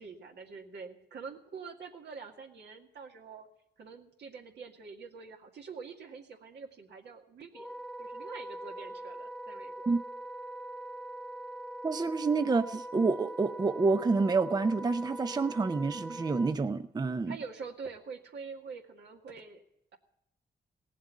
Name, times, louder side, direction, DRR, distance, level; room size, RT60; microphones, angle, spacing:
voice 1, 0.0-3.5 3.8-7.7 8.0-9.9 17.3-19.6, right 5 dB, 80° right, 2 dB, 2.0 m, -45 dB
Wind instrument woodwind instrument, 7.5-16.6, right 1 dB, 5° left, 0.8 m, -42 dB
voice 2, 11.8-17.4, right 4 dB, 25° right, 11 dB, 0.5 m, -28 dB
17.5 x 7.5 x 9.5 m, 0.79 s
cardioid pair, 95°, 17 cm